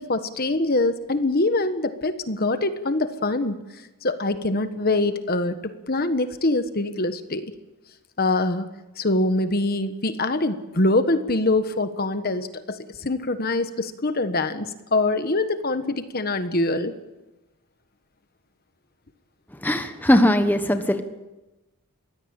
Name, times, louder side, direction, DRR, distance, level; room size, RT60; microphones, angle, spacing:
voice 1, 0.0-3.5 4.0-7.5 8.2-8.7 9.0-16.9, left 2 dB, 45° left, 10 dB, 1.3 m, -24 dB
voice 2, 19.6-21.0, left 1 dB, 10° left, 7 dB, 1.2 m, -19 dB
22.5 x 16.5 x 8.9 m, 1.1 s
head